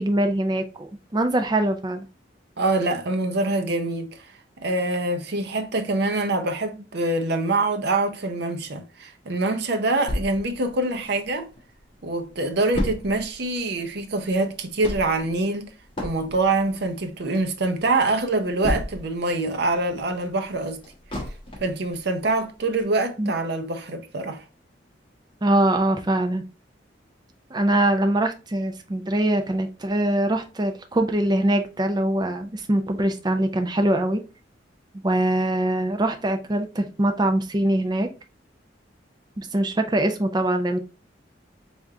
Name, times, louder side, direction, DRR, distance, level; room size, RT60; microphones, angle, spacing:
voice 1, 0.0-2.1 23.2-23.3 25.4-26.4 27.5-34.2 35.0-38.1 39.4-40.8, right 1 dB, 25° right, 0.5 m, -23 dB
voice 2, 2.6-4.2 4.6-11.5 12.0-15.7 16.0-20.8 21.6-24.4, right 2 dB, 60° right, 0.7 m, -25 dB
sound 1, 10.1-11.6 12.0-12.1 12.3-19.3 19.7-21.8 22.3-22.4 22.8-22.9, left 1 dB, 30° left, 1.1 m, -32 dB
3.6 x 3.5 x 2.7 m
head